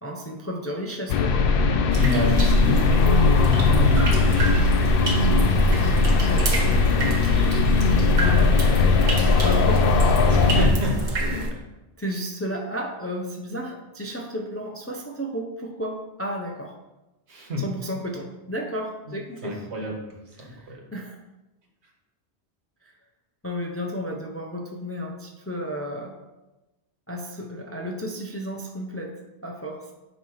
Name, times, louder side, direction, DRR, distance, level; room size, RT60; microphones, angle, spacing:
voice 1, 0.0-1.3 8.2-8.9 9.2-10.0 10.5-10.7 12.0-16.7 17.6-19.6 20.4-21.2 22.8-22.9 23.4-26.2 27.1-29.2 29.4-29.9, equal, 15° left, 1 dB, 0.5 m, -33 dB
sound 1, 1.1-10.7, left 3 dB, 60° left, 0.7 m, -19 dB
sound 2, 1.9-11.5, right 1 dB, 45° right, 0.9 m, -28 dB
voice 2, 1.9-7.3 10.3-11.7 17.3-18.0 19.1-20.9, left 3 dB, 70° right, 0 dB, 1.6 m, -30 dB
9.1 x 3.1 x 4.7 m, 1.0 s
omnidirectional pair, 1.2 m